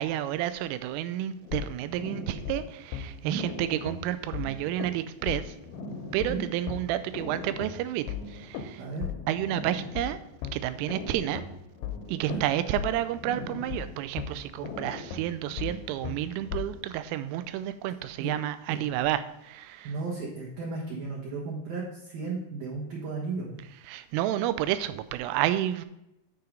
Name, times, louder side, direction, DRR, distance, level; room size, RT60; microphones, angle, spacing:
voice 1, 0.0-5.5 6.1-8.8 9.3-10.2 10.5-11.4 12.1-19.9 23.9-25.9, right 12 dB, 90° right, 13 dB, 3.1 m, -30 dB
sound 1, 1.4-16.9, left 6 dB, 80° left, 2.8 m, -38 dB
voice 2, 19.8-23.6, right 4 dB, 65° right, -4 dB, 2.4 m, -34 dB
9.5 x 4.8 x 5.1 m, 0.85 s
omnidirectional pair, 5.7 m